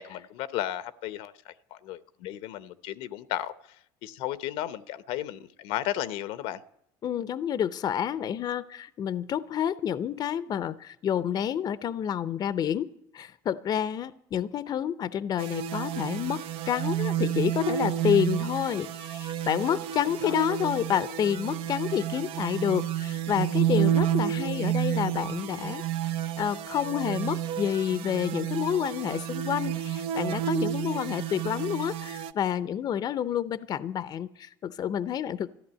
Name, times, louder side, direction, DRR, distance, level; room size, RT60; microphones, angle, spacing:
voice 1, 0.0-3.5 4.0-6.6 20.2-20.3, left 13 dB, 75° left, 0.8 m, -34 dB
voice 2, 7.0-12.9 13.1-25.8 26.4-35.5, left 9 dB, 40° left, 0.6 m, -29 dB
sound 1, 15.4-32.3, right 11 dB, 65° right, 0.7 m, -30 dB
14.0 x 11.5 x 8.8 m
supercardioid pair, 100°, 10 cm